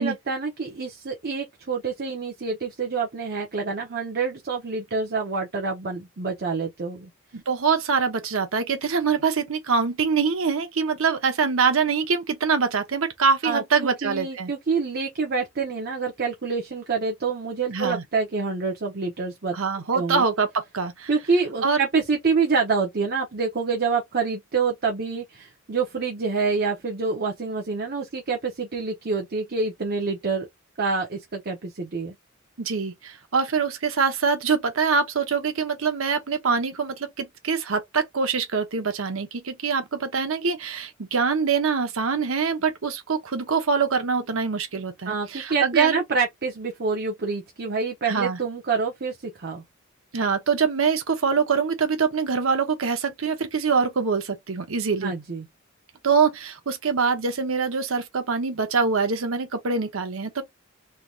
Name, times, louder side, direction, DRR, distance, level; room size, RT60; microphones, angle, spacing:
voice 1, 0.0-7.1 13.4-19.6 19.9-20.2 21.1-30.5 30.8-32.1 45.0-49.6 55.0-55.5, right 4 dB, 50° right, 0.8 m, -27 dB
voice 2, 7.3-14.5 17.7-18.0 19.5-21.1 21.6-21.8 32.6-46.0 48.1-48.4 50.1-55.1 56.0-60.4, right 5 dB, 75° right, 0.9 m, -24 dB
3.4 x 2.7 x 2.4 m
head